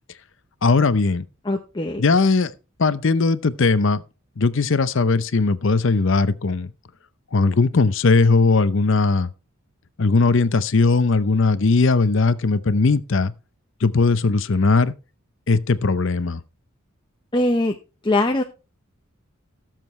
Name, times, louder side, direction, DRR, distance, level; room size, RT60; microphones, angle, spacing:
voice 1, 0.6-1.2 2.0-2.5 2.8-4.0 4.4-6.7 7.3-9.3 10.0-13.3 13.8-14.9 15.5-16.4, left 3 dB, 60° left, 0.6 m, -18 dB
voice 2, 1.4-2.0 17.3-17.7 18.0-18.4, left 2 dB, 20° left, 0.7 m, -21 dB
17.0 x 7.5 x 3.1 m
head